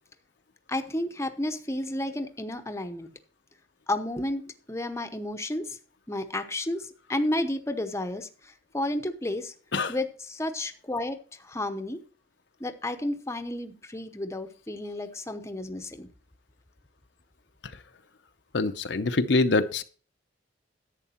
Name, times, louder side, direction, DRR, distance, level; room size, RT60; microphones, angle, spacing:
voice 1, 0.7-3.1 3.9-5.8 6.1-8.3 8.7-9.5 9.9-12.0 12.6-16.1, left 1 dB, 15° left, 8 dB, 0.8 m, -32 dB
voice 2, 18.5-19.8, left 3 dB, 65° left, 9 dB, 0.7 m, -24 dB
11.0 x 8.3 x 4.3 m, 0.40 s
head